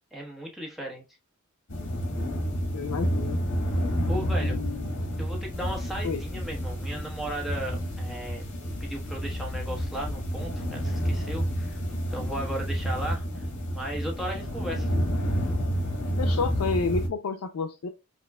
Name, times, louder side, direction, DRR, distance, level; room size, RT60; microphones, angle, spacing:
voice 1, 0.1-1.0 4.1-4.6 5.2-8.4 8.8-11.8 12.1-13.4 13.7-14.9, right 1 dB, ahead, -2 dB, 1.1 m, -36 dB
sound 1, 1.7-17.1, equal, 60° left, 1.5 m, -29 dB
voice 2, 2.7-3.4 4.1-4.9 6.0-6.2 16.2-17.9, left 4 dB, 85° left, 6 dB, 0.5 m, -30 dB
5.6 x 2.4 x 2.2 m, 0.26 s
head